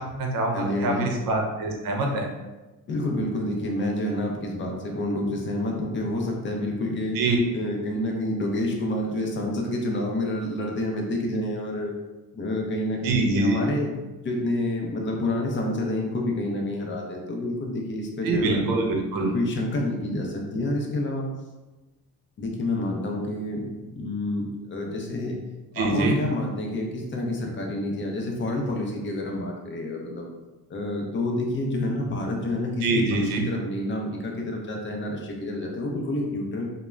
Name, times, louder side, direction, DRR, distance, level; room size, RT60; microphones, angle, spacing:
voice 1, 0.0-2.3 7.1-7.4 13.0-13.6 18.2-19.3 25.8-26.2 32.8-33.5, right 2 dB, 70° right, 2 dB, 0.6 m, -24 dB
voice 2, 0.5-1.1 2.9-7.2 7.5-11.9 12.3-13.9 14.2-18.6 19.2-21.3 22.4-25.4 25.7-30.3 30.7-33.0 33.5-36.6, left 1 dB, 35° left, 1 dB, 0.5 m, -28 dB
2.3 x 2.1 x 3.1 m, 1.1 s
cardioid pair, 125°, 36 cm